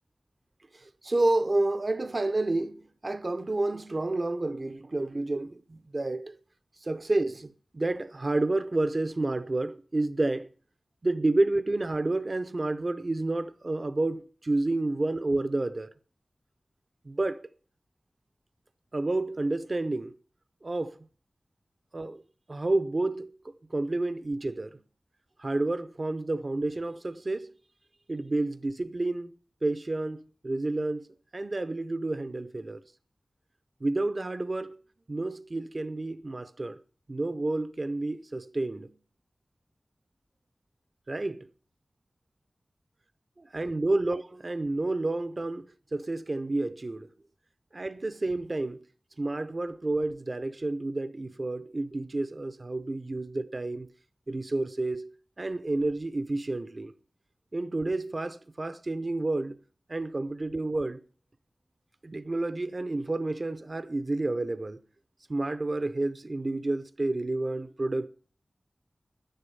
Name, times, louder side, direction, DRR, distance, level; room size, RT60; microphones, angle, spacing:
voice 1, 0.7-6.4 6.8-10.5 11.0-15.9 17.0-17.5 18.9-20.2 20.6-21.0 21.9-22.2 22.5-24.8 25.4-27.5 28.1-29.3 29.6-31.1 31.3-32.8 33.8-34.8 35.1-36.8 37.1-39.0 41.1-41.5 43.5-47.1 47.7-48.8 49.2-53.9 54.3-55.1 55.4-56.9 57.5-59.6 59.9-61.0 62.0-64.8 65.3-68.1, right 2 dB, 45° right, 0.6 m, -30 dB
11.5 x 10.5 x 5.4 m
wide cardioid pair, 75°, 0 cm